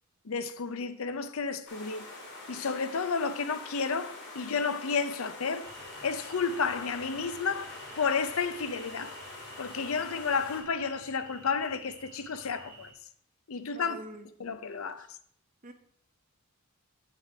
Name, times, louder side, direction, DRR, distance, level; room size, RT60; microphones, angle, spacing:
voice 1, 0.2-2.1 2.5-5.7 6.0-9.1 9.6-12.9 13.5-14.0 14.4-15.2, left 5 dB, 70° left, 0.6 m, -31 dB
sound 1, 1.7-10.6, left 2 dB, 50° left, 2.5 m, -45 dB
sound 2, 5.6-12.9, right 3 dB, 10° right, 4.4 m, -52 dB
voice 2, 13.7-14.3 15.6-15.7, right 1 dB, 35° right, 0.8 m, -44 dB
9.2 x 6.1 x 4.8 m
head